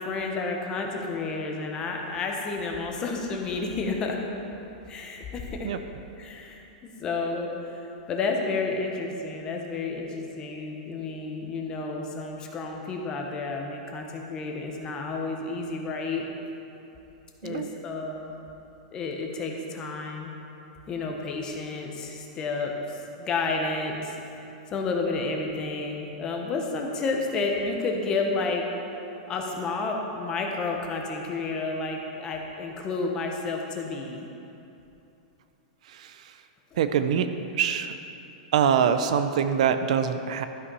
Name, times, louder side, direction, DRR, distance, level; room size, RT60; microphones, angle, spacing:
voice 1, 0.0-4.2 4.9-5.7 6.2-16.3 17.4-18.4 18.9-20.3 20.9-24.1 24.7-28.7 29.3-34.3 36.7-36.8, left 3 dB, 20° left, 1 dB, 0.8 m, -31 dB
voice 2, 36.8-37.3 37.6-37.9 38.5-40.4, right 8 dB, 60° right, 9 dB, 0.5 m, -24 dB
12.5 x 5.8 x 5.4 m, 2.9 s
supercardioid pair, 170°, 4 cm